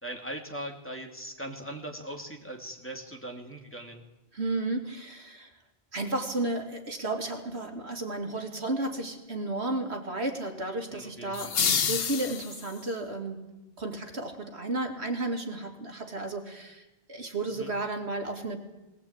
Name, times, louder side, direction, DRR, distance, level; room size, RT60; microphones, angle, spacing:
voice 1, 0.0-4.0 10.9-12.0 17.5-17.7, right 1 dB, 10° left, 1 dB, 2.5 m, -40 dB
voice 2, 4.3-5.5 5.9-13.4 13.8-16.8 17.1-18.6, right 2 dB, 85° right, 4 dB, 2.7 m, -33 dB
sound 1, 11.3-12.9, left 7 dB, 65° left, 1.1 m, -28 dB
20.0 x 18.5 x 8.8 m, 1.0 s
omnidirectional pair, 1.1 m